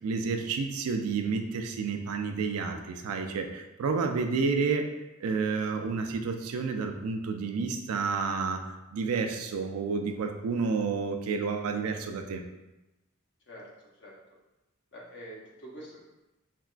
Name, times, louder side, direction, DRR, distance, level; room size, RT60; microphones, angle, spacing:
voice 1, 0.0-4.9 5.2-12.4, right 4 dB, 90° right, 5 dB, 0.3 m, -30 dB
voice 2, 13.5-14.4 14.9-16.0, equal, 55° left, -3 dB, 0.7 m, -46 dB
3.4 x 2.2 x 2.4 m, 0.99 s
head